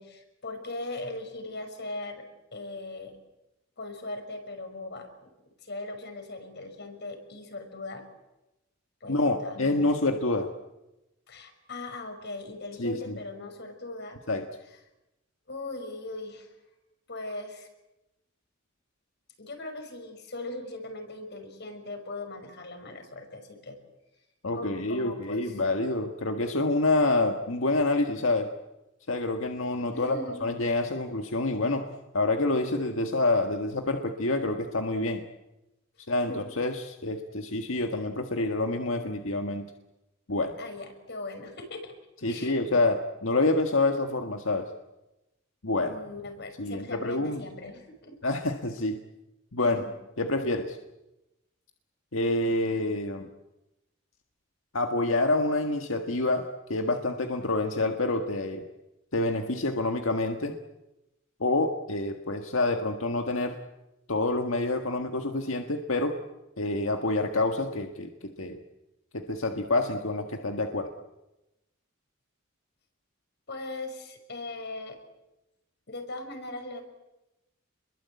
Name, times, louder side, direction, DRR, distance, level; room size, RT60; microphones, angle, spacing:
voice 1, 0.0-2.2 2.5-3.2 3.8-5.3 5.6-8.0 9.0-10.0 11.3-14.2 15.5-16.5 17.1-17.7 19.4-23.8 24.5-25.6 29.9-30.4 36.3-36.4 40.6-41.9 42.3-42.8 45.8-48.2 49.6-49.9 73.5-75.0 75.9-76.8, left 2 dB, 60° left, 6 dB, 5.7 m, -39 dB
voice 2, 9.1-10.5 12.8-13.2 14.3-14.4 24.4-28.5 29.1-31.8 32.1-35.2 36.1-39.6 40.3-40.5 42.2-44.7 45.6-46.0 46.6-47.4 48.2-49.0 49.5-49.8 50.2-50.8 52.1-53.3 54.7-56.4 56.7-58.6 59.1-60.5 61.4-63.6 64.1-66.1 66.6-68.6 69.1-70.9, left 2 dB, 90° left, 4 dB, 1.7 m, -27 dB
28.0 x 22.0 x 8.5 m, 0.97 s
head